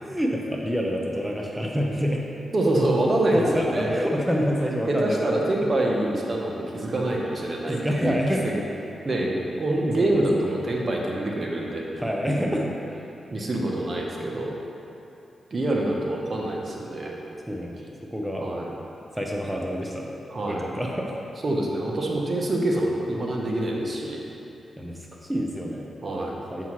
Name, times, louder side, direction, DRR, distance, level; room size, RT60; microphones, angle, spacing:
voice 1, 0.0-2.2 3.3-5.4 7.7-8.5 10.0-10.6 12.0-12.7 17.5-17.8 18.1-18.4 19.1-20.1 20.5-21.2 24.8-25.9 26.5-26.7, equal, 10° right, -1 dB, 0.8 m, -27 dB
voice 2, 2.5-3.9 4.9-8.6 9.0-12.0 12.4-12.5 13.3-14.6 15.5-17.2 18.4-18.7 20.3-20.8 21.4-24.2 26.0-26.4, right 1 dB, 50° right, -1 dB, 1.0 m, -26 dB
7.0 x 5.7 x 3.2 m, 2.8 s
supercardioid pair, 50°, 0 cm